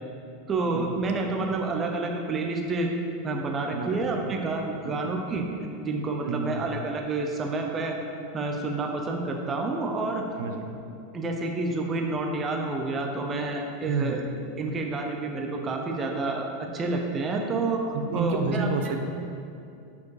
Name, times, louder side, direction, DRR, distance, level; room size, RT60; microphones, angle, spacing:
voice 1, 0.5-2.9 3.2-5.4 5.8-8.0 8.3-10.2 11.1-14.2 14.6-18.9, right 3 dB, 20° right, 1 dB, 0.6 m, -29 dB
voice 2, 3.7-4.3 4.8-4.9 6.2-6.6 10.4-10.6 13.9-14.2 18.1-19.0, right 4 dB, 75° right, 5 dB, 0.6 m, -30 dB
7.0 x 4.8 x 4.7 m, 2.6 s
supercardioid pair, 165°, 0 cm